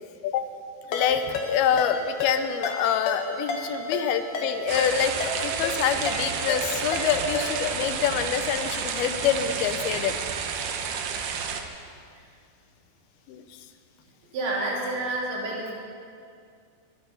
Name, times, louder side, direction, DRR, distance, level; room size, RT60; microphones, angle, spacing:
voice 1, 0.9-10.2 13.3-13.4, left 8 dB, 85° left, 9 dB, 2.8 m, -26 dB
Ringtone, 0.9-7.8, left 2 dB, 55° left, 2.3 m, -32 dB
sound 1, 4.7-11.6, right 6 dB, 70° right, 2.3 m, -31 dB
voice 2, 14.3-15.7, right 2 dB, 90° right, -4 dB, 5.1 m, -29 dB
22.5 x 10.5 x 5.6 m, 2.3 s
omnidirectional pair, 4.4 m